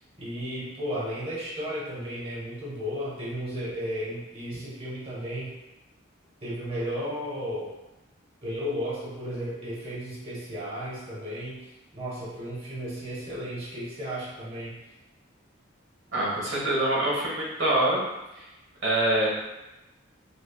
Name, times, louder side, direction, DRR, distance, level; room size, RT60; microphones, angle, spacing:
voice 1, 0.2-5.5 6.4-7.7 8.4-11.7 11.9-14.7, equal, 30° right, -7 dB, 0.7 m, -34 dB
voice 2, 16.1-18.0 18.4-18.5 18.8-19.3, right 1 dB, 75° right, -5 dB, 1.3 m, -25 dB
5.3 x 2.1 x 2.2 m, 0.99 s
head